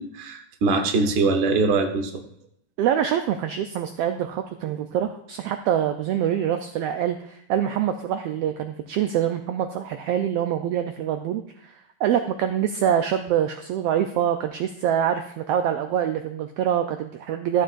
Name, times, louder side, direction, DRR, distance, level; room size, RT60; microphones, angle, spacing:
voice 1, 0.0-2.2, right 3 dB, 60° right, 5 dB, 1.1 m, -22 dB
voice 2, 2.8-17.6, right 9 dB, 85° right, 7 dB, 1.4 m, -25 dB
14.0 x 7.6 x 2.5 m, 0.71 s
omnidirectional pair, 3.3 m